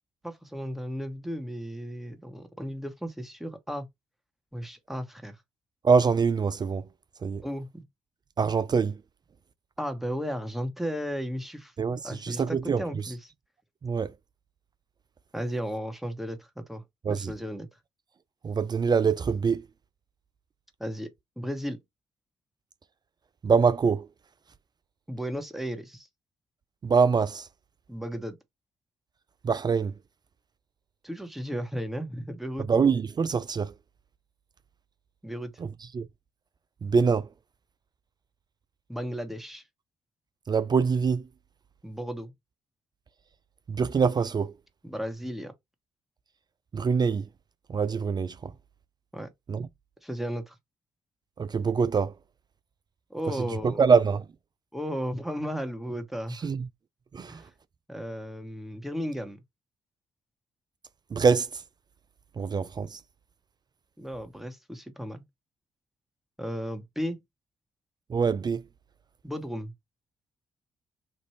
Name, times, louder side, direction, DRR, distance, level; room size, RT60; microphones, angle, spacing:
voice 1, 0.2-3.9 4.5-5.4 7.4-7.8 9.8-13.3 15.3-17.7 20.8-21.8 25.1-26.1 27.9-28.4 31.0-32.7 35.2-35.5 38.9-39.6 41.8-42.3 44.8-45.5 49.1-49.3 50.0-50.6 53.1-53.9 54.7-56.5 57.3-57.5 57.9-59.4 64.0-65.2 66.4-67.2 69.2-69.7, equal, ahead, 1.1 m, -35 dB
voice 2, 5.8-6.8 7.2-7.4 8.4-9.0 11.8-12.8 13.8-14.1 17.1-17.3 18.4-19.6 23.4-24.1 26.8-27.5 29.4-29.9 32.7-33.7 35.6-35.7 35.9-36.1 36.8-37.3 40.5-41.2 43.7-44.5 46.7-47.3 47.7-48.5 49.5-49.7 51.4-52.1 53.8-54.3 56.4-56.7 57.1-57.4 61.1-61.6 62.4-63.0 68.1-68.6, right 5 dB, 30° right, 0.4 m, -24 dB
3.1 x 2.5 x 3.2 m
hypercardioid pair, 40°, 14 cm